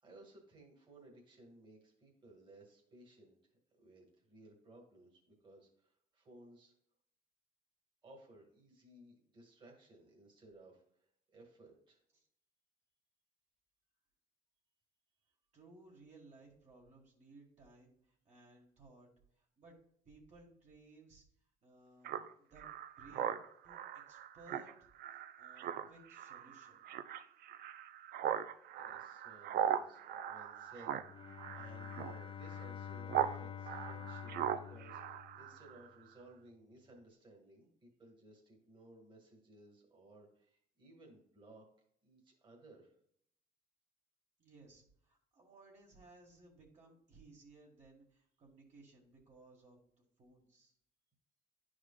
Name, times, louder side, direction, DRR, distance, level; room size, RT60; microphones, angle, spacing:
voice 1, 0.0-3.4 3.8-6.7 8.0-12.0 28.3-28.4 28.7-41.7 42.0-42.9, right 2 dB, 30° right, -1 dB, 1.9 m, -59 dB
voice 2, 15.5-19.1 19.4-19.8 20.0-21.2 21.6-23.8 24.1-24.7 25.1-26.8 44.4-49.8 50.2-50.7, right 2 dB, 45° right, -2 dB, 1.9 m, -61 dB
Speech synthesizer, 22.0-33.4 33.7-35.9, right 10 dB, 65° right, 0.5 m, -40 dB
Bowed string instrument, 30.9-35.8, left 8 dB, 30° left, 0.4 m, -48 dB
10.5 x 4.9 x 2.4 m, 0.68 s
cardioid pair, 110°, 17 cm